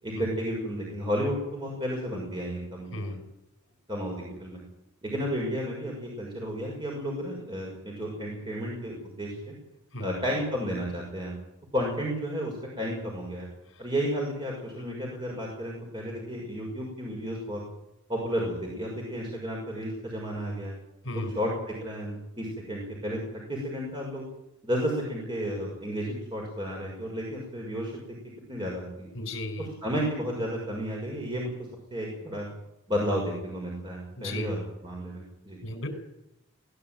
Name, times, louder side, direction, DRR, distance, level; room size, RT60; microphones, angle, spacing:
voice 1, 0.0-3.2 3.9-4.6 5.0-9.5 10.0-11.3 11.7-13.5 13.8-17.6 18.1-20.8 21.1-24.2 24.6-27.9 28.5-29.1 29.6-31.5 31.9-32.5 32.9-35.6, equal, 25° right, -2 dB, 5.8 m, -32 dB
voice 2, 29.1-29.7 34.2-34.5 35.6-35.9, left 1 dB, 65° left, 6 dB, 5.9 m, -34 dB
21.5 x 18.0 x 9.2 m, 0.88 s
head